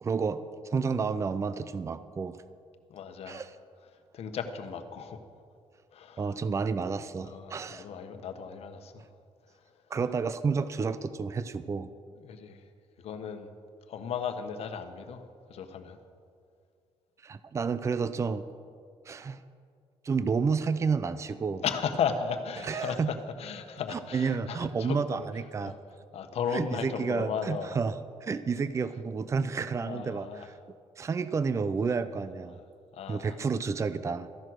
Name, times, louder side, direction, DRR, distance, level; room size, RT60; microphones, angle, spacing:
voice 1, 0.0-2.4 3.3-3.5 6.2-7.9 9.9-11.9 17.2-18.4 19.1-19.4 20.0-21.6 22.6-23.1 23.9-25.7 26.5-30.3 31.0-32.6 33.1-34.3, right 5 dB, 25° right, 13 dB, 0.5 m, -30 dB
voice 2, 2.9-3.5 4.1-5.2 5.9-6.3 7.2-9.0 12.2-12.7 13.0-13.5 13.9-16.0 21.6-25.2 25.6-25.7 26.1-27.8 29.8-30.5 32.5-32.6 32.9-33.5, left 6 dB, 65° left, 7 dB, 1.2 m, -35 dB
14.5 x 11.0 x 6.4 m, 2.2 s
cardioid pair, 125°, 11 cm